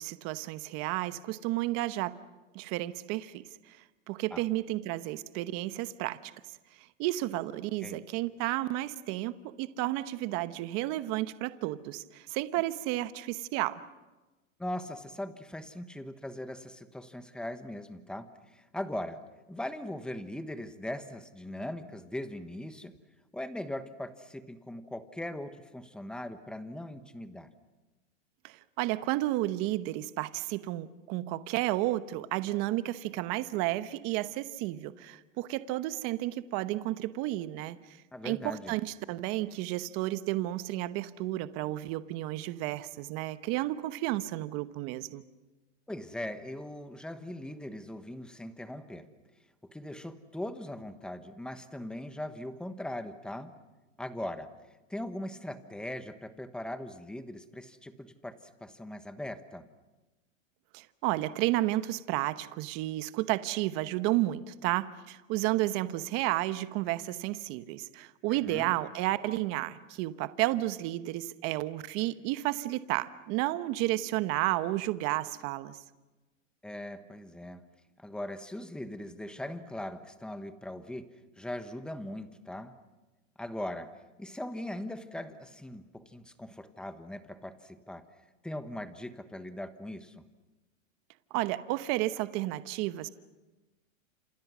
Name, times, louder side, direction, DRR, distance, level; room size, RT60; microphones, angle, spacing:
voice 1, 0.0-2.2 2.5-3.8 4.1-6.3 6.8-13.8 28.4-38.0 38.2-45.2 60.7-75.8 91.3-93.1, right 16 dB, 35° right, 13 dB, 1.0 m, -32 dB
voice 2, 14.6-19.2 19.5-22.9 23.3-27.5 38.1-38.7 45.9-49.1 49.6-53.5 54.0-54.5 54.9-58.3 58.6-59.6 68.3-68.7 76.6-77.6 78.0-81.1 81.4-82.8 83.4-88.0 88.4-90.3, left 1 dB, ahead, 10 dB, 1.1 m, -40 dB
29.5 x 27.5 x 6.2 m, 1.1 s
supercardioid pair, 145°, 39 cm